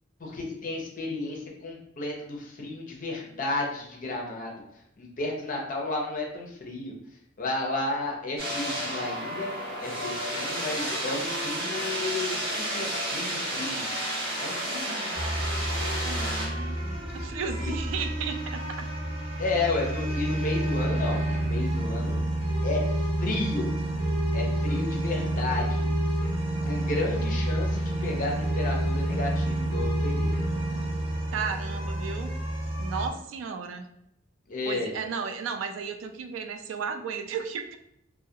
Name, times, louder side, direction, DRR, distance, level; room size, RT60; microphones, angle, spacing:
voice 1, 0.2-4.6 5.0-6.9 7.4-9.5 9.8-13.9 14.4-15.1 17.6-17.8 19.4-22.3 22.6-23.7 24.3-25.9 26.6-30.4 34.5-34.9, left 2 dB, 45° left, -1 dB, 0.6 m, -32 dB
sound 1, 8.4-16.5, equal, 55° right, 0.9 m, -31 dB
sound 2, 15.1-33.1, right 1 dB, 30° right, 0.6 m, -29 dB
voice 2, 16.0-18.9 31.3-32.3 32.8-33.9 34.7-37.8, right 6 dB, 75° right, 8 dB, 0.3 m, -34 dB
2.3 x 2.1 x 2.7 m, 0.75 s
head